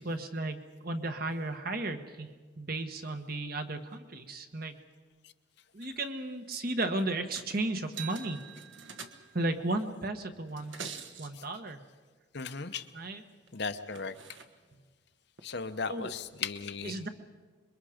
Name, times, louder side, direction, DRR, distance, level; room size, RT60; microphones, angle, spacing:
voice 1, 0.0-4.7 5.7-8.4 9.3-11.8 12.9-13.2 15.9-16.1 16.8-17.1, right 2 dB, 45° right, 7 dB, 1.3 m, -34 dB
sound 1, 7.3-7.6 7.8-9.5 10.5-11.3 13.5-13.6 13.9-14.4 15.4-15.5, right 6 dB, 65° right, 1.4 m, -44 dB
voice 2, 12.3-12.9 13.5-14.2 15.4-17.0, left 5 dB, 55° left, 9 dB, 0.9 m, -36 dB
27.0 x 22.5 x 5.1 m, 1.4 s
head